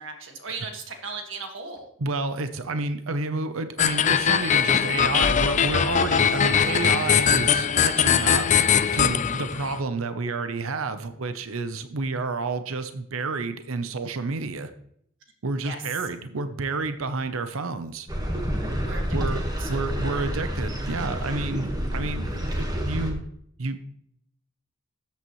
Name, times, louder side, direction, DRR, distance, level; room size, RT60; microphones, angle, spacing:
voice 1, 0.0-1.9 15.6-15.8 18.8-19.9, right 4 dB, 65° right, 4 dB, 1.8 m, -37 dB
voice 2, 2.0-8.5 8.9-14.7 15.4-18.1 19.1-23.2 23.6-23.8, right 3 dB, 80° right, 10 dB, 0.7 m, -30 dB
sound 1, 3.8-9.8, left 8 dB, 35° left, 0.4 m, -21 dB
sound 2, 18.1-23.1, equal, 20° right, 1.4 m, -29 dB
13.5 x 8.4 x 3.1 m, 0.71 s
head